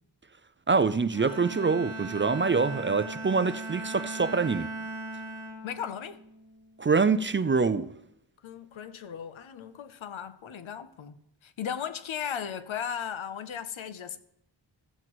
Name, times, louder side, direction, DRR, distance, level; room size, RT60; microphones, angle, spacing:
voice 1, 0.7-4.7 6.8-7.9, right 4 dB, 25° right, 0.4 m, -25 dB
Bowed string instrument, 1.1-6.6, right 2 dB, 65° left, 4.2 m, -38 dB
voice 2, 5.6-6.2 8.4-11.1 11.4-14.2, left 8 dB, 85° left, 0.7 m, -36 dB
15.0 x 7.8 x 3.1 m
cardioid pair, 55°, 46 cm